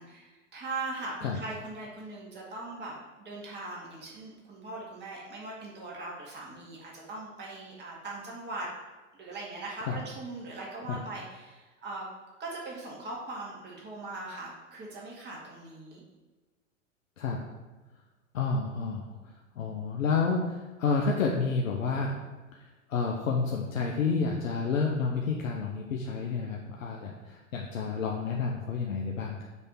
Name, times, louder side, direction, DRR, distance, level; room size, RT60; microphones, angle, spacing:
voice 1, 0.0-2.9 3.2-8.7 9.1-12.1 12.4-16.0, right 2 dB, 25° right, -4 dB, 2.0 m, -40 dB
voice 2, 18.3-22.2 22.6-29.5, left 4 dB, 85° left, -1 dB, 0.9 m, -30 dB
6.3 x 3.4 x 5.5 m, 1.2 s
hypercardioid pair, 100°, 39 cm